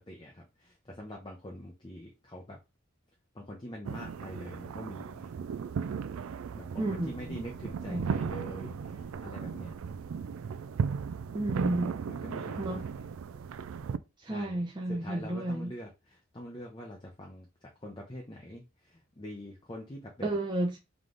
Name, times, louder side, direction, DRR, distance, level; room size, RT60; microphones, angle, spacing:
voice 1, 0.0-2.6 3.3-5.3 6.5-9.7 12.1-12.8 14.2-14.6 14.9-17.5 17.8-20.4, equal, 20° left, 0.7 m, -44 dB
sound 1, 3.8-14.0, right 6 dB, 75° right, 0.3 m, -36 dB
voice 2, 6.8-7.4 7.9-8.2 11.3-12.0 12.6-12.9 14.2-15.7 20.2-20.8, right 1 dB, 20° right, 0.6 m, -32 dB
3.5 x 3.2 x 3.8 m
head